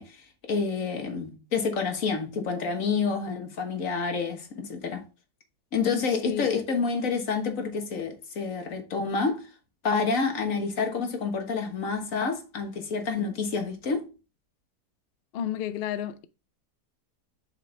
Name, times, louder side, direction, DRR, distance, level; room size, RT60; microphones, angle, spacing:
voice 1, 0.0-5.0 5.7-9.5 9.8-14.1, left 5 dB, 55° left, 1.7 m, -28 dB
voice 2, 15.3-16.3, left 10 dB, 80° left, 0.5 m, -31 dB
6.7 x 5.2 x 3.3 m
omnidirectional pair, 1.7 m